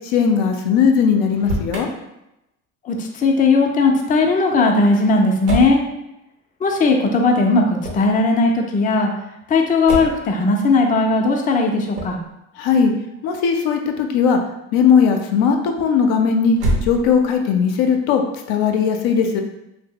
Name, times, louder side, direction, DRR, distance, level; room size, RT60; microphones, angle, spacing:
voice 1, 0.1-1.9 12.6-12.9 13.2-14.4 14.7-16.6 16.9-18.2 18.5-19.4, left 6 dB, 70° left, 4 dB, 0.5 m, -17 dB
Motor vehicle (road), 1.3-1.9 5.4-5.8 7.8-8.2 9.8-10.3 11.9-12.3 16.5-17.4, right 1 dB, 90° right, 0.8 m, -25 dB
voice 2, 2.8-5.8 6.6-9.1 9.5-12.2, left 3 dB, 20° left, 2 dB, 0.5 m, -17 dB
2.7 x 2.1 x 3.6 m, 0.88 s
hypercardioid pair, 75°, 39 cm